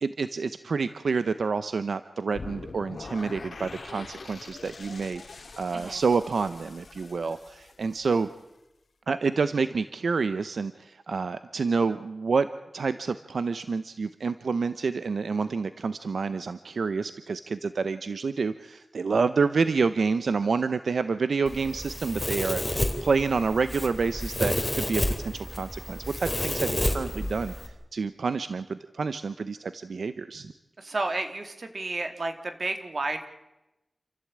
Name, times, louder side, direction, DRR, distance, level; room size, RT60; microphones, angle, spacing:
voice 1, 0.0-8.3 9.1-12.5 12.7-30.5, right 4 dB, 85° right, 12 dB, 0.7 m, -28 dB
sound 1, 2.3-8.4, left 3 dB, 70° left, 1.9 m, -43 dB
Domestic sounds home sounds, 21.5-27.7, left 1 dB, 15° left, 3.7 m, -30 dB
voice 2, 30.8-33.3, right 2 dB, 60° right, 6 dB, 2.6 m, -31 dB
27.5 x 15.0 x 8.7 m, 0.97 s
wide cardioid pair, 75°, 0 cm